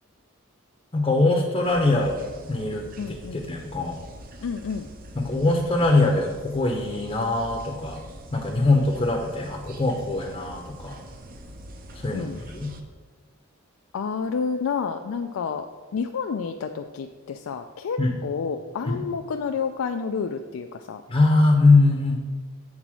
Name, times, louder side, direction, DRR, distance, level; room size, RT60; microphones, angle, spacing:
voice 1, 0.9-2.2 2.5-4.0 5.1-8.0 8.3-11.0 11.9-12.7 18.0-18.2 18.9-19.0 21.1-22.2, left 2 dB, 25° left, 1 dB, 0.7 m, -22 dB
sound 1, 1.6-12.8, right 1 dB, 45° right, 0.6 m, -44 dB
voice 2, 3.0-3.5 4.4-4.9 12.1-12.4 13.9-15.7 15.9-21.0, left 5 dB, 85° left, 5 dB, 0.4 m, -29 dB
7.5 x 4.0 x 6.2 m, 1.4 s
head